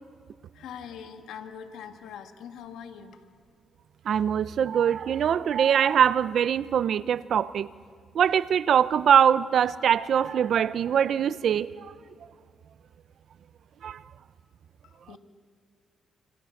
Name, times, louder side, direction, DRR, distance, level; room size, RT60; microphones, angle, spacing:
voice 1, 0.5-3.2 14.8-15.2, left 8 dB, 90° left, 1.8 m, -42 dB
voice 2, 4.1-7.7 8.1-11.9 13.8-14.0, right 8 dB, 65° right, 0.6 m, -23 dB
26.5 x 26.5 x 6.6 m
cardioid pair, 85°, 0 cm